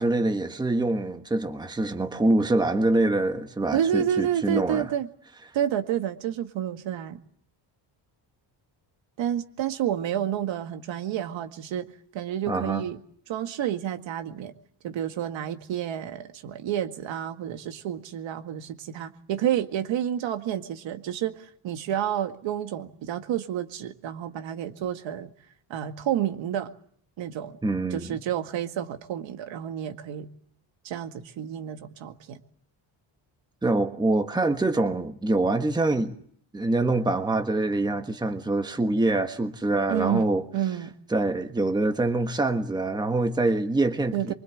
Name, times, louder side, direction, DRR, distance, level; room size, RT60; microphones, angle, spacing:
voice 1, 0.0-4.9 12.5-12.8 27.6-28.1 33.6-36.1 36.5-40.4 41.1-44.3, right 2 dB, 10° right, 1.4 m, -25 dB
voice 2, 3.7-5.1 5.5-7.2 9.2-11.9 12.1-13.0 13.3-14.5 14.8-25.3 25.7-26.7 27.2-27.6 27.9-30.3 30.8-32.4 39.9-40.9 44.1-44.3, right 10 dB, 75° right, 2.0 m, -30 dB
25.0 x 24.0 x 8.6 m
cardioid pair, 170°, 45 cm